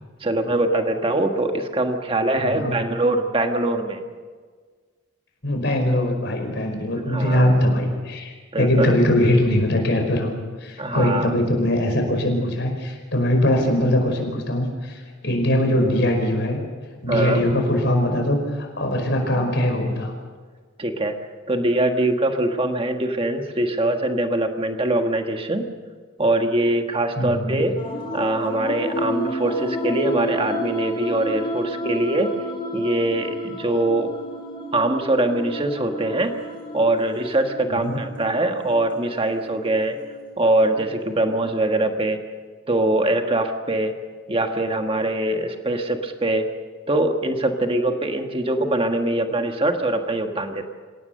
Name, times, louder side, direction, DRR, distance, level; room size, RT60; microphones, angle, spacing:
voice 1, 0.2-4.0 7.1-7.6 8.5-9.0 10.8-11.3 17.1-17.5 20.8-21.1 21.5-25.7 26.2-27.8 28.1-32.3 32.7-34.1 34.7-36.3 36.7-40.0 40.4-42.2 42.7-43.9 44.3-46.5 46.9-50.6, right 1 dB, 25° right, 5 dB, 1.5 m, -23 dB
voice 2, 2.4-2.8 5.4-10.3 10.6-16.6 17.0-20.1 27.2-27.6 37.7-37.9, left 1 dB, 55° left, 3 dB, 5.1 m, -21 dB
sound 1, 27.8-41.3, equal, 25° left, 5.9 m, -31 dB
27.0 x 17.0 x 6.7 m, 1.5 s
head